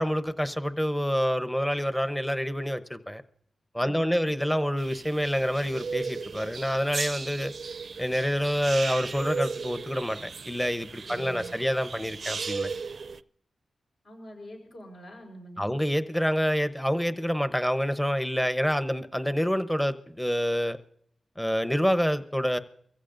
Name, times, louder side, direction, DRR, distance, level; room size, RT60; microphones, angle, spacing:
voice 1, 0.0-3.2 3.7-7.5 8.0-12.7 15.6-20.8 21.4-22.6, equal, 5° left, 0.9 m, -27 dB
voice 2, 3.7-4.3 11.1-11.6 14.0-15.8, equal, 65° left, 4.4 m, -45 dB
sound 1, 4.8-13.2, right 5 dB, 60° right, 0.4 m, -36 dB
24.0 x 15.5 x 2.6 m
cardioid pair, 65°, 0 cm